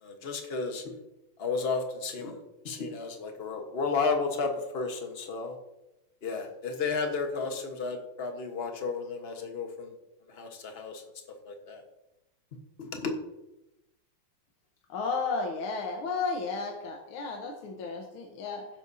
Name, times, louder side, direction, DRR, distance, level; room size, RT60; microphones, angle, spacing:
voice 1, 0.0-0.9 1.4-2.4 2.6-5.6 6.2-9.9 10.3-11.0 11.4-11.8 12.8-13.1, left 4 dB, 35° left, 4 dB, 1.2 m, -32 dB
voice 2, 14.9-18.7, left 4 dB, 75° left, 2 dB, 1.9 m, -33 dB
16.0 x 7.6 x 2.7 m, 0.94 s
omnidirectional pair, 2.4 m